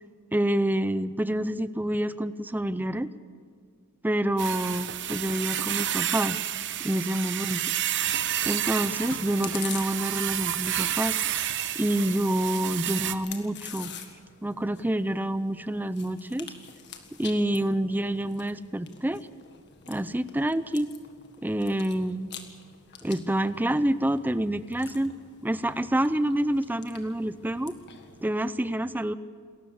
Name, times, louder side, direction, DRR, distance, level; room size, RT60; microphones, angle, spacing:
voice 1, 0.3-3.1 4.0-6.4 6.8-7.6 8.4-11.5 11.7-13.9 14.4-16.5 17.2-19.3 19.9-20.9 21.4-22.3 23.0-25.1 25.4-27.7 28.2-29.1, right 1 dB, 10° right, 14 dB, 0.5 m, -27 dB
sound 1, 4.4-13.1, right 11 dB, 60° right, 0.9 m, -30 dB
Chewing mastication, 8.7-28.3, left 7 dB, 55° left, 1.8 m, -47 dB
28.0 x 14.0 x 7.2 m, 2.1 s
head